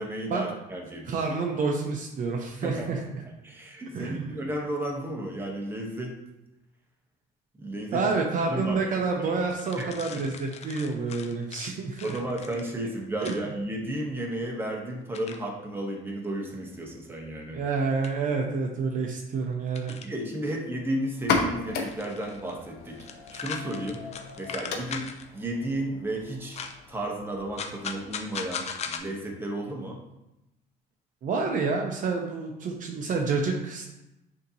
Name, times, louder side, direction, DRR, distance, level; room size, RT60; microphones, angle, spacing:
voice 1, 0.0-1.2 2.6-2.9 3.4-6.1 7.6-8.1 8.5-9.3 9.8-9.9 10.1-10.2 12.0-17.6 19.9-22.9 23.3-24.0 24.3-25.0 25.3-26.6 26.9-30.0, right 1 dB, 15° right, 0 dB, 0.9 m, -33 dB
voice 2, 1.1-3.0 3.9-4.3 7.9-12.1 13.2-13.3 17.5-19.9 31.2-33.9, right 4 dB, 50° right, 2 dB, 0.6 m, -28 dB
sound 1, 9.5-12.7 13.2-13.4 15.1-15.5 16.8-16.9 18.0-18.1 19.8-20.2 21.8-22.6 22.9-25.2 26.5-26.8 27.6-29.0, left 6 dB, 40° left, 0.5 m, -39 dB
sound 2, 21.1-28.6, left 4 dB, 80° left, 0.7 m, -35 dB
6.4 x 2.8 x 2.8 m, 0.92 s
cardioid pair, 110°, 17 cm